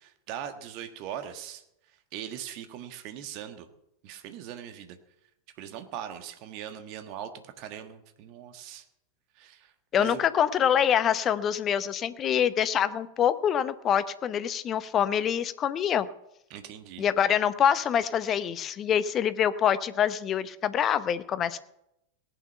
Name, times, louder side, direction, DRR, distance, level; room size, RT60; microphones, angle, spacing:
voice 1, 0.0-1.6 2.1-3.7 4.0-5.0 5.6-8.8 9.3-10.2 16.5-17.0, right 10 dB, 45° right, 8 dB, 1.5 m, -40 dB
voice 2, 9.9-16.1 17.0-21.6, left 9 dB, 30° left, 14 dB, 0.8 m, -25 dB
18.0 x 9.3 x 5.7 m, 0.83 s
figure-of-eight pair, 90°, 0 cm